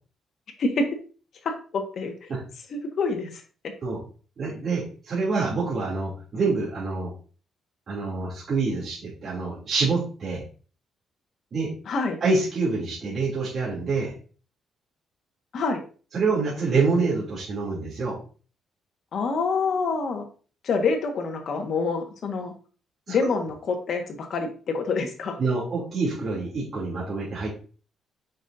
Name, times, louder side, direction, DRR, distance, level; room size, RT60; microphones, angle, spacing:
voice 1, 1.4-2.1 2.7-3.4 11.9-12.2 15.5-15.8 19.1-20.3 20.6-22.5 23.1-25.4, left 4 dB, 60° left, 4 dB, 1.4 m, -26 dB
voice 2, 4.4-7.1 7.9-10.4 11.5-11.7 12.2-14.1 16.1-18.2 23.1-23.2 25.4-27.5, right 4 dB, 50° right, -6 dB, 2.8 m, -26 dB
6.2 x 5.8 x 2.6 m, 0.39 s
cardioid pair, 90°, 0 cm